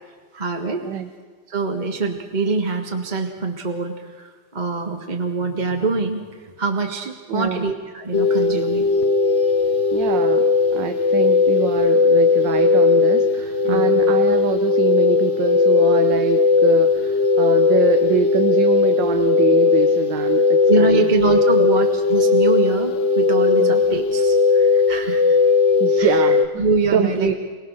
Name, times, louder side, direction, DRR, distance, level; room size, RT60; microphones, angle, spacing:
voice 1, 0.3-0.8 1.5-6.3 6.6-8.9 13.7-14.0 20.7-25.4 26.0-26.3 26.6-27.3, right 4 dB, 25° right, 3 dB, 1.5 m, -24 dB
voice 2, 7.3-7.7 9.9-10.4 10.7-21.1 21.6-21.7 23.6-23.7 25.8-27.3, right 7 dB, 60° right, 7 dB, 1.6 m, -24 dB
sound 1, 8.1-26.5, left 4 dB, 45° left, 1.1 m, -17 dB
29.0 x 19.5 x 6.5 m, 1.5 s
omnidirectional pair, 2.3 m